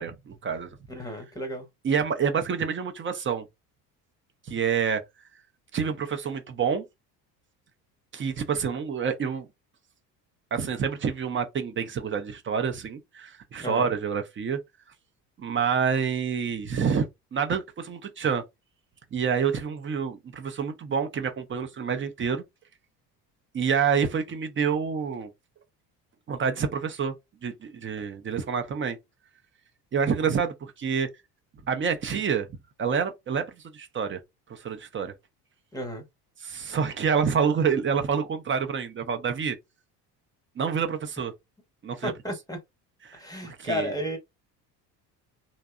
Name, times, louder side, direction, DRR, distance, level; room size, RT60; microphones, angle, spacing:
voice 1, 0.0-0.7 1.8-3.4 4.5-5.0 5.7-6.8 8.1-9.5 10.5-14.6 15.4-17.0 17.3-18.4 19.1-22.4 23.5-25.3 26.3-27.1 27.4-29.0 29.9-31.1 31.7-32.5 32.8-33.5 33.7-34.2 34.5-35.1 36.4-39.6 40.6-41.3 41.8-42.1 43.1-43.9, right 6 dB, 25° right, 0.5 m, -27 dB
voice 2, 0.9-1.7 13.6-13.9 35.7-36.0 42.0-42.6 43.1-44.2, equal, 10° left, 0.8 m, -33 dB
2.6 x 2.0 x 2.3 m
hypercardioid pair, 70°, 48 cm